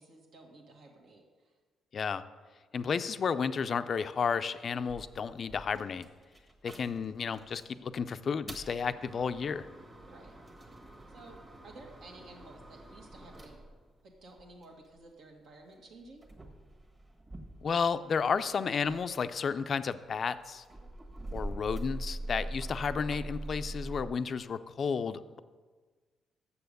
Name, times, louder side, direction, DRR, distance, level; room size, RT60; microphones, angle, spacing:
voice 1, 0.0-1.5 10.0-10.3 11.1-13.6 14.0-16.2, right 2 dB, 75° right, 0 dB, 1.7 m, -53 dB
voice 2, 1.9-2.2 2.7-6.1 6.6-9.7 17.6-20.6 21.3-25.4, left 6 dB, 50° left, 12 dB, 0.4 m, -32 dB
sound 1, 4.9-7.8 8.2-15.0 15.7-18.4 18.7-24.1, right 1 dB, 30° right, 1.5 m, -44 dB
6.9 x 6.8 x 6.6 m, 1.4 s
cardioid pair, 90°, 0 cm